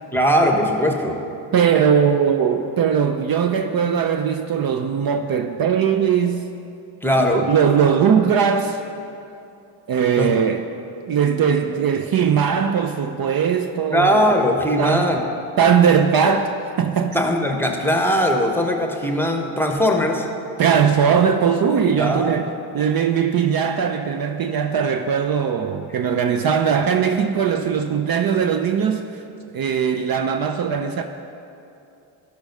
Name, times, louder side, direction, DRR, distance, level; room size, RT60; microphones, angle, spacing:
voice 1, 0.1-1.2 7.0-7.5 10.2-10.3 13.9-15.2 17.1-20.3 22.0-22.4, equal, 5° left, 3 dB, 1.1 m, -20 dB
voice 2, 1.5-6.5 7.2-8.8 9.9-10.7 11.1-14.3 14.8-15.1 15.6-17.2 20.6-29.2 29.5-31.0, right 7 dB, 50° right, 6 dB, 0.6 m, -20 dB
11.5 x 5.3 x 5.4 m, 2.7 s
supercardioid pair, 60°, 46 cm